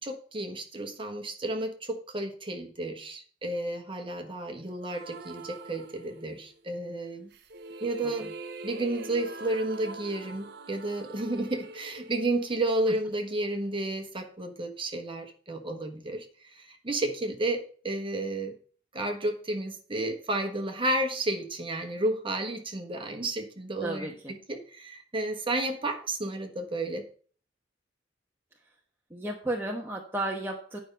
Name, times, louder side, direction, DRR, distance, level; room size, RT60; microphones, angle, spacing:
voice 1, 0.0-7.3 7.8-8.3 8.6-18.6 18.9-27.0, right 2 dB, 30° right, 4 dB, 1.5 m, -32 dB
sound 1, 4.9-6.6 7.3-13.4, right 3 dB, 60° right, 0.8 m, -44 dB
voice 2, 23.8-24.3 29.1-30.8, right 1 dB, 10° right, -1 dB, 1.1 m, -33 dB
9.9 x 5.4 x 5.6 m, 0.44 s
head